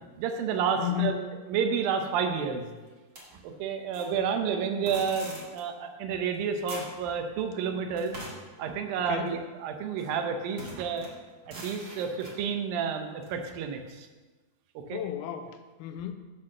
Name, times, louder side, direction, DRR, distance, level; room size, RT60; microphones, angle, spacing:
voice 1, 0.1-2.7 3.4-8.2 8.6-11.1 11.5-14.1 14.9-15.0, right 6 dB, 75° right, 5 dB, 2.3 m, -30 dB
voice 2, 0.8-1.3 9.0-9.3 14.9-16.1, left 12 dB, 80° left, 7 dB, 2.5 m, -33 dB
sound 1, 3.2-4.1 4.9-5.6 6.3-6.4 6.7-7.0 8.0-9.4 10.0-10.2 10.6-12.4 13.2-13.3, equal, 40° right, 1.0 m, -43 dB
9.8 x 4.1 x 6.5 m, 1.3 s
omnidirectional pair, 4.7 m